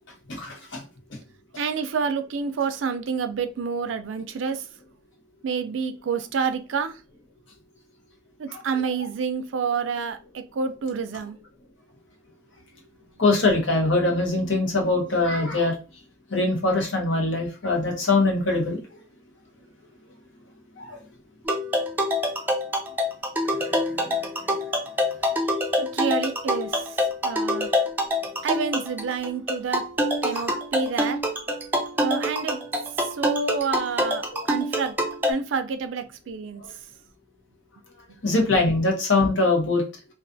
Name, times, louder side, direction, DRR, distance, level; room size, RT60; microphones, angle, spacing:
voice 1, 0.3-0.8 8.5-8.9 13.2-15.7 16.3-18.8 20.8-21.0 23.4-24.1 30.3-30.8 34.3-34.4 36.6-36.7 38.2-39.8, left 2 dB, 75° left, 0.9 m, -23 dB
voice 2, 1.6-4.6 5.4-6.9 8.4-11.4 25.8-26.7 27.2-27.7 28.4-29.8 30.2-31.2 32.0-32.6 33.2-34.9 35.3-36.6, right 5 dB, 80° right, 0.4 m, -28 dB
sound 1, 21.5-35.3, equal, 10° right, 0.4 m, -26 dB
2.4 x 2.3 x 2.5 m
head